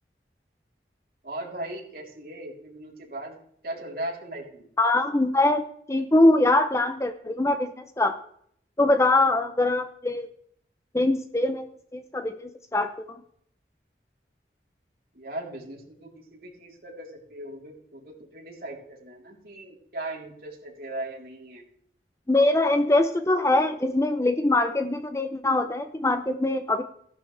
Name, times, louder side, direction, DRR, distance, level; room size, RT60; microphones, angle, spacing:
voice 1, 1.2-3.3 3.6-4.7 15.1-21.7, right 1 dB, 55° right, -2 dB, 3.6 m, -38 dB
voice 2, 4.8-8.2 8.8-10.3 10.9-11.7 11.9-13.2 22.3-26.8, left 2 dB, 15° left, 8 dB, 0.6 m, -23 dB
15.5 x 11.0 x 3.3 m, 0.65 s
head